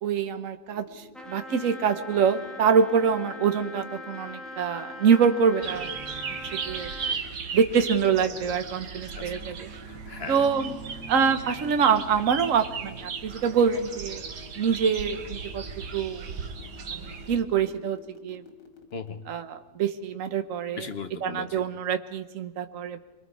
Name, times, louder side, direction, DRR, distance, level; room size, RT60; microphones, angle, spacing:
voice 1, 0.0-6.0 6.5-7.2 7.5-9.7 10.3-10.8 11.1-14.2 14.6-15.6 15.9-16.2 16.9-18.4 19.3-20.9 21.2-23.0, right 6 dB, 55° right, 8 dB, 1.3 m, -25 dB
sound 1, 0.7-19.1, left 8 dB, 85° left, 2.4 m, -51 dB
Trumpet, 1.1-7.2, left 1 dB, ahead, 1.3 m, -42 dB
sound 2, 5.6-17.4, right 5 dB, 75° right, 1.9 m, -37 dB
voice 2, 9.2-9.5 9.8-10.5 18.9-19.3 20.7-21.6, left 5 dB, 50° left, 9 dB, 0.8 m, -38 dB
26.5 x 22.0 x 4.8 m, 1.1 s
omnidirectional pair, 1.8 m